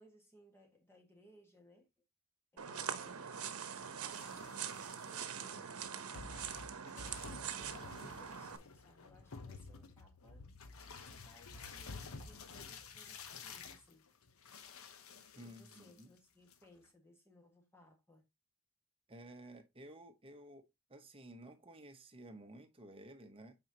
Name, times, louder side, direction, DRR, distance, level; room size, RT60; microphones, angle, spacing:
voice 1, 0.0-1.9 2.5-6.0 6.9-10.5 11.1-14.1 15.4-18.2, equal, 10° left, 1.7 m, -64 dB
sound 1, 2.6-8.6, right 7 dB, 85° right, 0.9 m, -43 dB
sound 2, 4.1-5.1 5.8-5.9 6.1-16.2 16.5-16.9, left 4 dB, 75° left, 0.9 m, -51 dB
voice 2, 15.3-16.1 19.1-20.6 20.9-23.6, right 1 dB, 25° right, 1.0 m, -54 dB
8.6 x 4.5 x 2.9 m
head